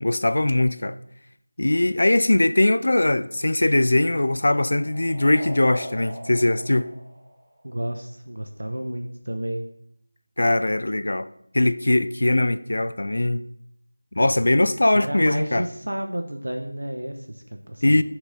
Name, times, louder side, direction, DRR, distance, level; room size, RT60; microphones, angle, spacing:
voice 1, 0.0-1.0 1.6-6.9 10.4-11.3 11.5-13.5 14.1-15.7 17.8-18.0, left 1 dB, 60° left, 0.4 m, -21 dB
sound 1, 3.4-8.0, right 1 dB, 40° right, 3.6 m, -42 dB
voice 2, 7.6-9.7 14.9-18.0, right 1 dB, 80° right, 1.0 m, -31 dB
8.9 x 5.0 x 5.5 m
figure-of-eight pair, 170°, 0 cm